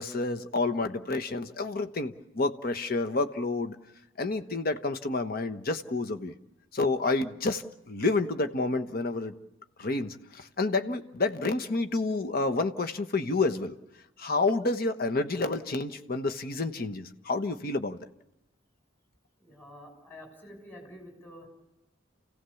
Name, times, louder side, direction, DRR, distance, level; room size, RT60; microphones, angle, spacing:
voice 1, 0.0-3.8 4.2-6.3 6.7-9.3 9.8-13.8 14.2-18.0, left 3 dB, 50° left, 7 dB, 1.2 m, -29 dB
voice 2, 19.4-21.5, left 1 dB, 10° left, 2 dB, 6.9 m, -48 dB
29.0 x 17.0 x 7.1 m, 0.97 s
head